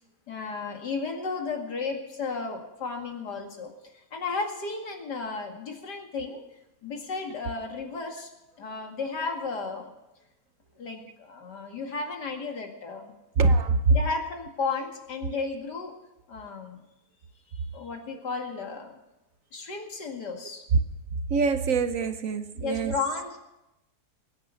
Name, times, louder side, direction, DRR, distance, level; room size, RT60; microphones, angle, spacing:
voice 1, 0.3-6.4 6.8-8.3 8.6-9.9 10.8-13.1 13.9-15.9 16.3-16.8 17.7-19.0 19.5-20.6 22.6-23.4, left 4 dB, 80° left, 2.7 m, -34 dB
voice 2, 13.4-13.9 20.3-20.4 21.3-22.9, right 4 dB, 60° right, 1.1 m, -24 dB
20.5 x 8.9 x 6.8 m
omnidirectional pair, 1.8 m